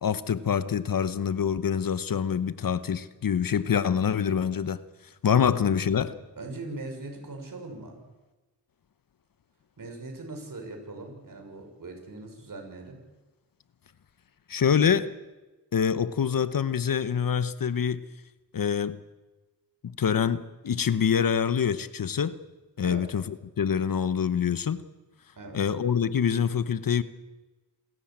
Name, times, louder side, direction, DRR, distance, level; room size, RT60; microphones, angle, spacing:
voice 1, 0.0-4.8 5.2-6.2 14.5-15.1 15.7-18.0 18.5-19.0 19.8-22.4 22.8-24.8 25.5-27.0, left 7 dB, 55° left, 14 dB, 1.1 m, -25 dB
voice 2, 6.4-8.0 9.8-13.0 22.8-23.1 25.4-25.6, right 2 dB, 55° right, 3 dB, 6.2 m, -40 dB
27.0 x 14.0 x 8.8 m, 1.2 s
cardioid pair, 85°, 39 cm